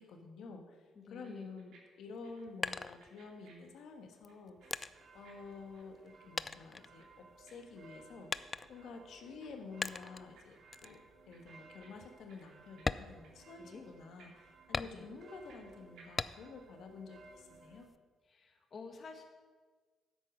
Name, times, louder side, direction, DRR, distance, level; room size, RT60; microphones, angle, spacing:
voice 1, 0.0-4.8 5.1-8.4 8.7-11.0 11.3-17.9, left 4 dB, 75° left, 5 dB, 1.5 m, -50 dB
sound 1, 0.9-1.0 1.2-1.8 2.1-4.7 4.9-8.3 8.6-9.5 9.7-10.9 11.2-13.0 13.2-13.4 13.7-13.8 14.2-15.7 16.0-16.1, right 6 dB, 85° right, 3.2 m, -64 dB
voice 2, 1.0-1.5 13.6-13.8 14.9-15.0 18.3-19.2, left 4 dB, 45° left, 3 dB, 1.6 m, -50 dB
sound 2, 2.1-3.6 4.2-6.1 6.4-7.5 8.3-9.0 9.8-10.3 10.7-11.0 11.4-11.5 12.0-12.1 12.7-13.9 14.7-15.4 16.2-16.7 17.1-18.0, left 3 dB, 25° left, 0.4 m, -41 dB
sound 3, 4.6-17.9, right 3 dB, 45° right, 1.4 m, -60 dB
9.8 x 8.2 x 6.2 m, 1.4 s
cardioid pair, 90°, 0 cm